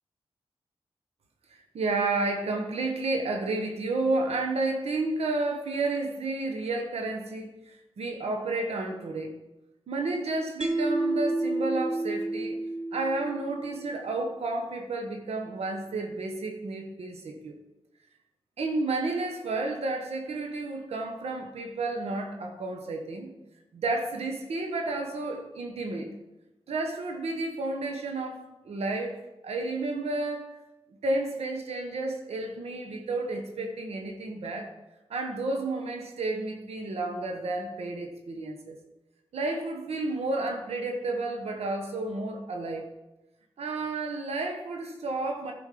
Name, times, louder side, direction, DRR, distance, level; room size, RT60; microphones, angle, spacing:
voice 1, 1.5-9.4 9.9-12.6 12.9-17.6 18.6-23.3 23.7-26.1 26.7-30.5 31.0-34.7 35.1-38.8 39.3-42.9 43.6-45.5, right 2 dB, 90° right, 1.1 m, -31 dB
Mallet percussion, 10.6-13.9, right 2 dB, 5° right, 0.7 m, -30 dB
10.5 x 5.2 x 5.0 m
cardioid pair, 65°, 10 cm